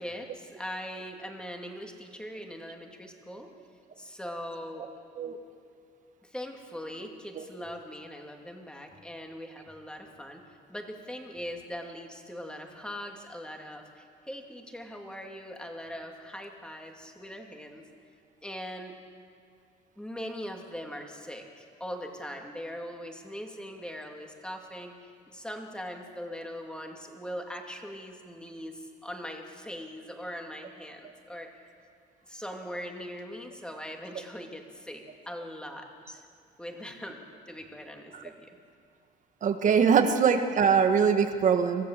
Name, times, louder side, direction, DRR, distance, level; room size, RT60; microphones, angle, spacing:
voice 1, 0.0-3.5 4.0-4.9 6.2-17.8 18.4-18.9 20.0-31.5 32.3-36.2 36.6-38.5 40.0-40.1, equal, 5° left, 2 dB, 2.6 m, -41 dB
voice 2, 39.4-41.9, right 6 dB, 50° right, 6 dB, 1.6 m, -22 dB
25.0 x 15.0 x 7.6 m, 2.3 s
cardioid pair, 110°, 17 cm